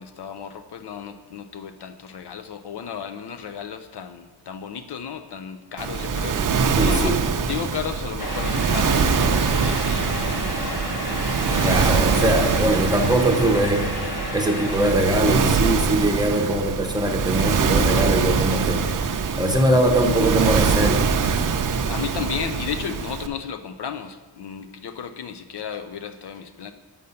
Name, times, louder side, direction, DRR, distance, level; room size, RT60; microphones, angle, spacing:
voice 1, 0.0-12.3 18.9-19.4 21.9-26.7, left 7 dB, 60° left, 9 dB, 0.6 m, -34 dB
Waves surf, 5.8-23.3, right 5 dB, 45° right, 0.5 m, -23 dB
voice 2, 6.8-7.2 11.6-21.4, right 1 dB, 10° right, 2 dB, 0.7 m, -22 dB
sound 1, 8.2-14.9, left 2 dB, 45° left, 1.5 m, -31 dB
6.5 x 5.4 x 6.9 m, 1.3 s
wide cardioid pair, 165°, 45 cm